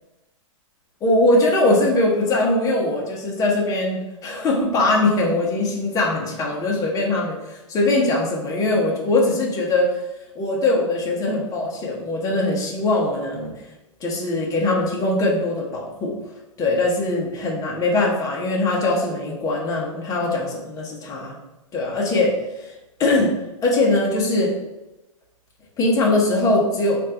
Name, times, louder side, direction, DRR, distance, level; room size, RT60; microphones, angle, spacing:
voice 1, 1.0-10.0 10.4-13.5 14.0-16.2 16.6-21.4 21.7-22.7 23.0-23.4 23.6-24.5 25.8-27.0, left 2 dB, 20° left, -2 dB, 0.9 m, -21 dB
3.2 x 2.5 x 4.3 m, 0.99 s
hypercardioid pair, 135°, 17 cm